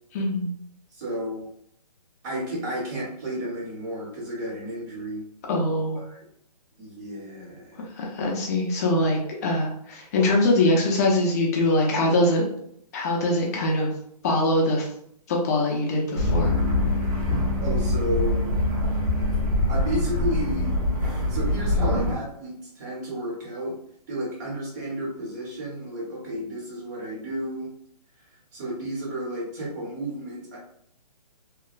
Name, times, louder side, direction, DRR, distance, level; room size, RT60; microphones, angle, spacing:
voice 1, 0.1-0.5 5.5-6.0 8.0-12.4 12.9-13.9 14.2-14.9 15.3-16.6, left 1 dB, 25° left, -1 dB, 0.5 m, -23 dB
voice 2, 0.9-1.5 2.2-5.2 5.9-6.2 6.8-8.0 17.6-18.5 19.2-19.3 19.7-20.8 21.3-23.8 24.1-27.7 28.2-30.6, equal, 25° right, -3 dB, 0.7 m, -32 dB
sound 1, 16.1-22.1, left 1 dB, 75° right, 1.2 m, -24 dB
2.9 x 2.1 x 2.4 m, 0.69 s
hypercardioid pair, 155°, 21 cm